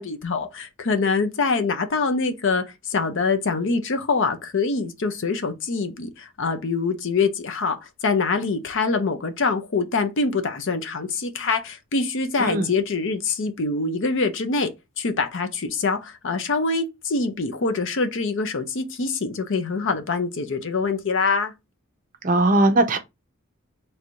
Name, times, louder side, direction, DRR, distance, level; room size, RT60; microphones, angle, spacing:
voice 1, 0.0-14.7 15.0-21.5, left 4 dB, 60° left, 0.6 m, -24 dB
voice 2, 22.2-23.0, right 2 dB, 35° right, 0.6 m, -19 dB
3.2 x 2.6 x 4.4 m
head